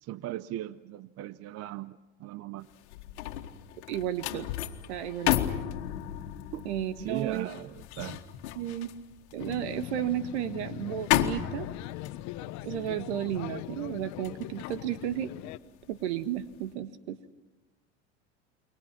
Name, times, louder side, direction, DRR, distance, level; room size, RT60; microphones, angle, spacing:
voice 1, 0.0-2.7 6.5-6.6 7.0-8.2, right 14 dB, 45° right, 17 dB, 0.7 m, -38 dB
sound 1, 2.7-16.0 16.4-16.7, left 13 dB, 80° left, 1.8 m, -34 dB
voice 2, 3.9-4.5 4.9-5.4 6.6-7.5 8.5-8.9 9.3-11.7 12.6-15.3 15.9-17.4, right 11 dB, 80° right, 12 dB, 1.5 m, -33 dB
sound 2, 9.4-15.6, left 18 dB, 55° left, 0.9 m, -41 dB
29.5 x 23.0 x 6.1 m, 1.1 s
supercardioid pair, 105°, 34 cm